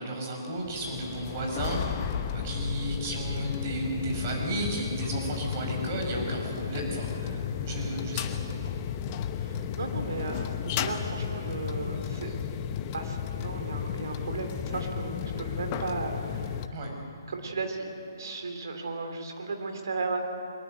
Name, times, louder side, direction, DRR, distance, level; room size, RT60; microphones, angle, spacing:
voice 1, 0.0-8.3 12.2-12.3 16.7-16.9, right 1 dB, 35° right, 1 dB, 5.7 m, -33 dB
sound 1, 0.6-16.7, left 8 dB, 30° left, 1.0 m, -33 dB
voice 2, 9.4-12.3 12.9-16.6 17.3-20.2, right 3 dB, 60° right, 5 dB, 3.4 m, -35 dB
23.0 x 21.0 x 7.9 m, 2.5 s
figure-of-eight pair, 135°, 2 cm